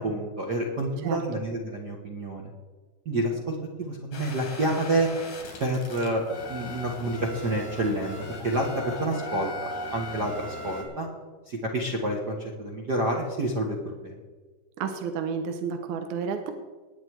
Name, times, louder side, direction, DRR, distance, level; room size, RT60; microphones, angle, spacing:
voice 1, 0.0-2.5 3.0-5.1 5.6-8.1 8.4-11.1 11.5-14.1, right 1 dB, 45° right, 0 dB, 1.3 m, -28 dB
sound 1, 4.1-10.8, left 1 dB, 75° left, 4.4 m, -38 dB
voice 2, 14.8-16.5, right 6 dB, 75° right, 6 dB, 2.3 m, -31 dB
19.5 x 8.9 x 4.7 m, 1.3 s
omnidirectional pair, 3.8 m